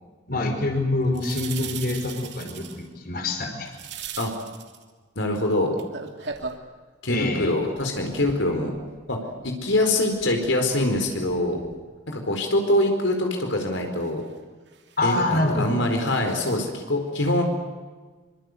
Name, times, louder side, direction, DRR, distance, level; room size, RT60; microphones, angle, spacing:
voice 1, 0.3-3.7 7.1-7.5 15.0-15.7, left 2 dB, 50° left, 4 dB, 4.9 m, -25 dB
sound 1, 1.1-2.9 3.7-4.8 5.7-6.7 7.4-9.1 9.4-11.9 12.3-12.4 14.0-14.2 14.7-15.2 16.1-16.6, right 6 dB, 60° right, 2.8 m, -39 dB
voice 2, 5.2-5.7 7.0-8.7 9.1-9.2 9.4-11.6 12.1-14.2 15.0-17.4, left 1 dB, 75° left, 3 dB, 4.6 m, -24 dB
26.0 x 25.0 x 8.0 m, 1.4 s
head